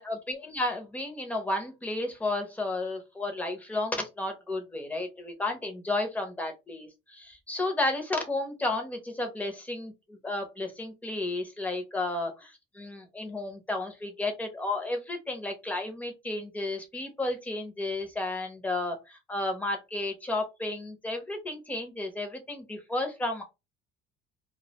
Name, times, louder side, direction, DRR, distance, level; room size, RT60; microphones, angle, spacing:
voice 1, 0.0-23.4, left 2 dB, 5° left, 0.5 m, -32 dB
2.4 x 2.1 x 2.7 m
cardioid pair, 170°, 20 cm